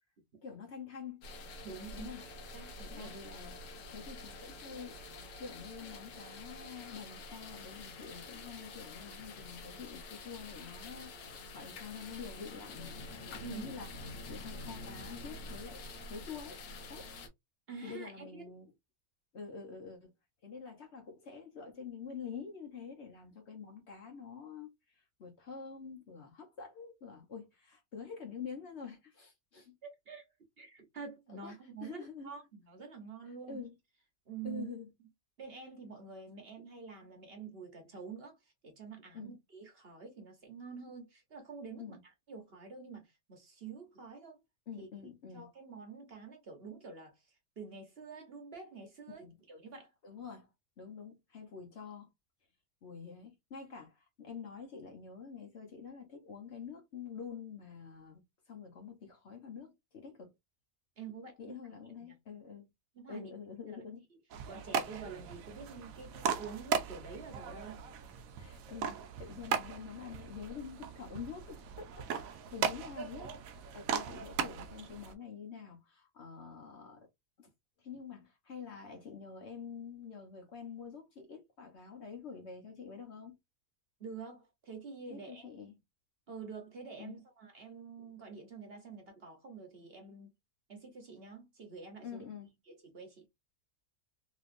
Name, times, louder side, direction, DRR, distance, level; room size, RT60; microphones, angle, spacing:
voice 1, 0.4-1.2 1.9-2.2 2.9-3.6 3.9-5.0 5.4-12.9 13.5-13.9 14.3-16.6 16.9-17.1 17.8-18.7 19.3-20.1 20.4-29.8 31.3-32.3 33.5-33.7 34.4-34.9 39.1-39.3 41.8-42.0 44.7-45.5 49.1-49.3 50.0-50.5 50.8-52.1 52.8-58.2 58.5-60.3 61.4-62.7 63.1-64.1 68.4-77.1 77.4-77.5 77.8-83.4 85.1-85.7 87.0-87.2 92.0-92.5, left 6 dB, 55° left, 1.0 m, -47 dB
sound 1, 1.2-17.3, left 2 dB, 90° left, 1.3 m, -47 dB
voice 2, 1.6-2.3 2.5-3.1 13.4-13.7 17.7-18.5 29.8-30.3 30.6-33.6 34.3-34.7 35.4-42.0 42.3-44.4 44.8-44.9 45.3-49.9 61.0-61.6 62.0-62.1 62.9-63.3 63.7-63.8 64.5-67.8 84.0-85.5 86.3-90.3 90.7-92.2 92.7-93.3, right 5 dB, 50° right, 1.0 m, -47 dB
sound 2, 64.3-75.1, right 7 dB, 70° right, 1.0 m, -38 dB
3.3 x 2.9 x 2.4 m
omnidirectional pair, 1.5 m